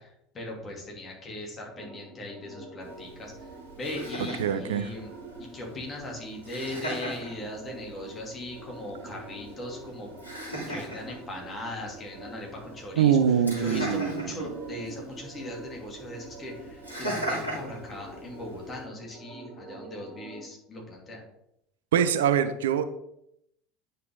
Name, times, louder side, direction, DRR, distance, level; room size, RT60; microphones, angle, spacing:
voice 1, 0.0-3.3 3.7-10.1 10.5-21.2, left 1 dB, 30° left, 0 dB, 3.0 m, -39 dB
sound 1, 1.8-20.4, right 2 dB, 25° right, 2.0 m, -46 dB
Laughter, 2.8-18.8, right 1 dB, 90° left, 2.8 m, -40 dB
voice 2, 4.4-4.9 13.0-14.6 21.9-22.8, right 8 dB, 65° right, 11 dB, 0.5 m, -24 dB
9.5 x 5.5 x 3.9 m, 0.77 s
figure-of-eight pair, 70°, 0 cm